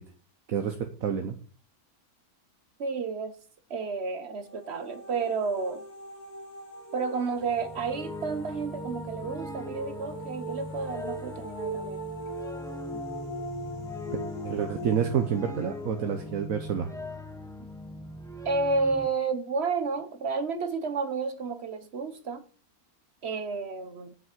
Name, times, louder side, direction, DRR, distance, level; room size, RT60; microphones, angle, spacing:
voice 1, 0.5-1.4 14.4-16.9, right 8 dB, 70° right, 1.3 m, -28 dB
voice 2, 2.8-3.4 3.7-5.8 6.9-12.0 12.9-13.0 18.4-22.4 23.2-24.1, right 4 dB, 50° right, 1.3 m, -31 dB
sound 1, 4.4-17.2, right 1 dB, 75° left, 2.3 m, -41 dB
sound 2, 7.3-19.1, left 1 dB, 5° left, 0.9 m, -40 dB
7.8 x 6.2 x 7.4 m
omnidirectional pair, 1.5 m